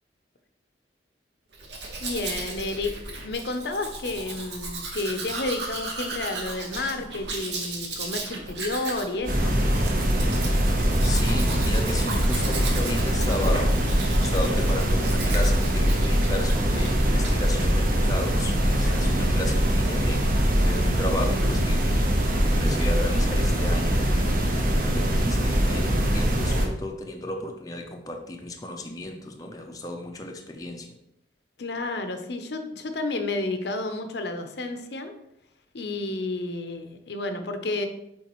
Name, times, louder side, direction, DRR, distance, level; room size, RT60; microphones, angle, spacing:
Domestic sounds home sounds, 1.5-17.0 17.2-17.7, right 2 dB, 70° right, 1.2 m, -35 dB
voice 1, 2.0-2.9 3.2-9.6 18.8-19.3 31.6-35.1 35.7-37.9, left 2 dB, 65° left, 7 dB, 0.7 m, -31 dB
sound 1, 9.3-26.7, equal, 50° right, 0.9 m, -22 dB
voice 2, 11.0-13.8 14.2-20.3 20.6-30.9, left 1 dB, 20° left, 2 dB, 0.5 m, -34 dB
7.1 x 4.6 x 3.0 m, 0.80 s
head